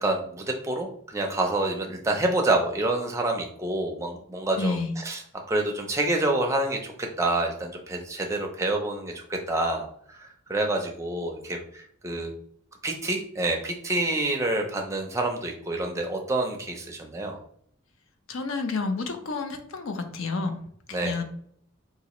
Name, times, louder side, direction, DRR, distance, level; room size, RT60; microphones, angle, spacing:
voice 1, 0.0-5.2 5.5-12.3 12.8-17.4 20.9-21.2, right 2 dB, 15° right, 2 dB, 0.4 m, -28 dB
voice 2, 4.6-4.9 18.3-20.5 20.9-21.2, left 4 dB, 70° left, 6 dB, 0.5 m, -30 dB
3.9 x 2.4 x 2.9 m, 0.65 s
head